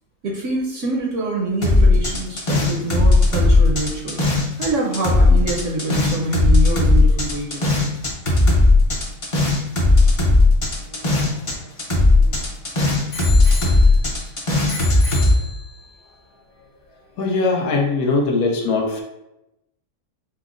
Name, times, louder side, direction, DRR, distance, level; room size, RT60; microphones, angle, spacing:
voice 1, 0.2-7.7, right 2 dB, 65° right, -1 dB, 0.8 m, -26 dB
sound 1, 1.6-4.7 4.9-11.5 11.8-15.3, left 2 dB, 35° left, 0.5 m, -16 dB
Bicycle bell, 10.8-12.5 13.1-14.3 14.7-15.9 16.7-16.8, left 4 dB, 65° left, 1.6 m, -34 dB
voice 2, 17.2-19.0, left 3 dB, 80° left, 1 dB, 1.2 m, -20 dB
5.4 x 2.0 x 2.4 m, 0.89 s
omnidirectional pair, 1.6 m